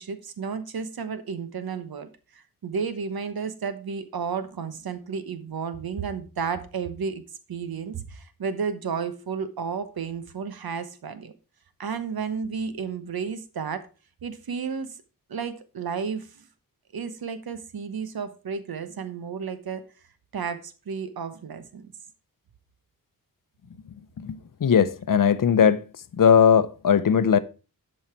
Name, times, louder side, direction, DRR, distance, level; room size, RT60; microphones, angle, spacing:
voice 1, 0.0-7.2 7.5-11.3 11.8-13.9 14.2-15.0 15.3-16.5 16.9-19.8 20.3-21.9, right 6 dB, 85° right, 1.1 m, -32 dB
voice 2, 24.2-25.8 26.1-27.4, left 7 dB, 65° left, 0.7 m, -19 dB
11.5 x 5.6 x 4.4 m
wide cardioid pair, 115°, 35 cm